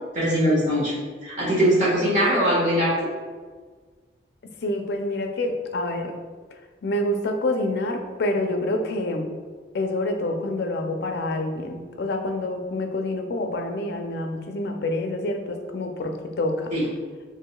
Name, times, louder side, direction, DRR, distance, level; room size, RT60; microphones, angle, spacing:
voice 1, 0.1-0.9 1.2-2.9 16.7-16.8, equal, 40° right, -7 dB, 1.4 m, -21 dB
voice 2, 4.6-6.2 6.8-9.3 9.7-16.7, left 1 dB, 60° left, 4 dB, 0.4 m, -27 dB
4.7 x 3.0 x 2.2 m, 1.5 s
head